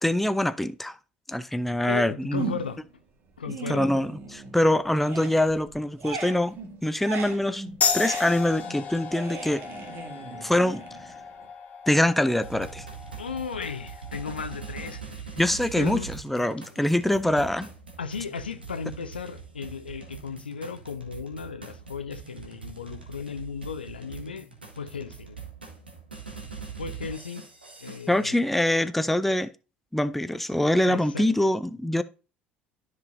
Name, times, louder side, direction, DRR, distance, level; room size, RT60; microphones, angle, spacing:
voice 1, 0.0-1.0 1.3-2.4 3.5-7.6 7.9-9.6 10.4-10.8 11.9-12.9 15.4-17.7 28.1-29.5 29.9-32.0, left 1 dB, 5° left, 0.5 m, -24 dB
voice 2, 1.9-2.8 3.4-3.9 13.2-15.2 15.8-16.1 18.0-24.5 24.7-25.4 26.8-27.5 27.8-28.4 30.9-31.3, left 6 dB, 80° left, 0.7 m, -35 dB
sound 1, 2.4-2.9 3.3-4.7 4.9-11.5, right 4 dB, 45° right, 1.8 m, -38 dB
sound 2, 7.8-14.9, left 6 dB, 30° left, 2.1 m, -34 dB
sound 3, 12.4-28.3, right 6 dB, 85° right, 1.5 m, -42 dB
13.0 x 5.3 x 2.7 m
figure-of-eight pair, 60°, 5 cm